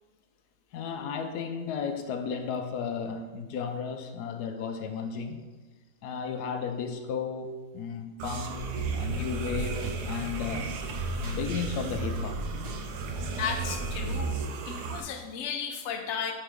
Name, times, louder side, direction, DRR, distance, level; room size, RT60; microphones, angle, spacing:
voice 1, 0.7-5.5 6.0-10.7 11.2-12.4, left 6 dB, 85° left, 6 dB, 1.2 m, -34 dB
sound 1, 8.2-15.0, right 4 dB, 85° right, 1.2 m, -34 dB
sound 2, 8.5-14.2, right 1 dB, 25° right, 0.6 m, -38 dB
voice 2, 13.3-16.3, left 6 dB, 55° left, 3 dB, 1.0 m, -34 dB
8.9 x 4.2 x 3.6 m, 1.3 s
omnidirectional pair, 1.7 m